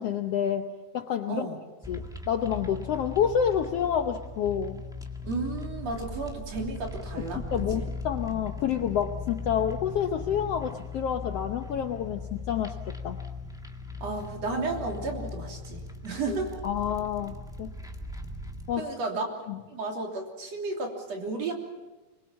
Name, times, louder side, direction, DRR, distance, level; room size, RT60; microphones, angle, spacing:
voice 1, 0.0-1.5 1.9-4.8 7.5-13.2 16.3-16.4 16.6-17.7 18.7-18.9 19.5-19.6, left 8 dB, 65° left, 6 dB, 1.6 m, -29 dB
voice 2, 1.3-1.6 5.2-7.4 7.7-7.9 14.0-16.6 18.8-19.2 19.7-21.5, right 3 dB, 55° right, 1 dB, 4.2 m, -33 dB
sound 1, 1.8-18.8, left 3 dB, ahead, 0.8 m, -38 dB
25.0 x 22.5 x 7.3 m, 1.1 s
omnidirectional pair, 3.7 m